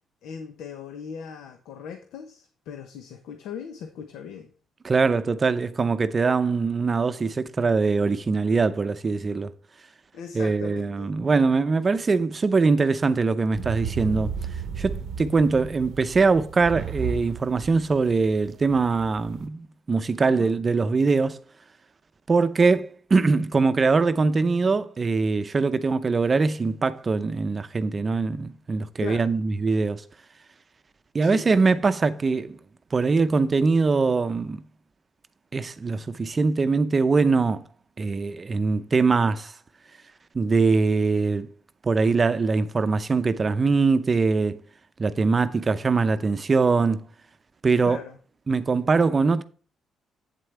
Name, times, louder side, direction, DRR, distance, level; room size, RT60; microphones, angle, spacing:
voice 1, 0.2-4.5 10.1-11.1 20.2-20.6 29.0-29.3 31.2-31.5 47.9-48.2, left 7 dB, 85° left, 0.9 m, -39 dB
voice 2, 4.8-9.5 10.3-14.3 14.8-21.4 22.3-30.0 31.1-32.6 32.9-34.6 35.5-37.6 38.0-39.5 40.3-41.5 41.8-44.6 45.0-47.0 47.6-48.0 48.5-49.4, right 4 dB, 35° right, 0.6 m, -22 dB
sound 1, 13.5-19.4, right 7 dB, 75° right, 0.7 m, -34 dB
8.3 x 7.8 x 3.3 m
cardioid pair, 90°, 0 cm